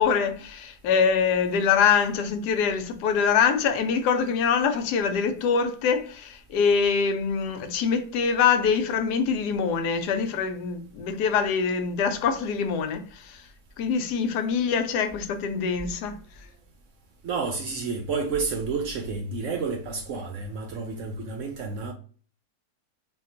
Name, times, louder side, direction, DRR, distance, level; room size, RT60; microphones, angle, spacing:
voice 1, 0.0-13.4 13.8-16.2, left 6 dB, 90° left, 1.2 m, -24 dB
voice 2, 17.2-21.9, right 4 dB, 65° right, 0.8 m, -30 dB
3.6 x 2.4 x 2.5 m
omnidirectional pair, 1.7 m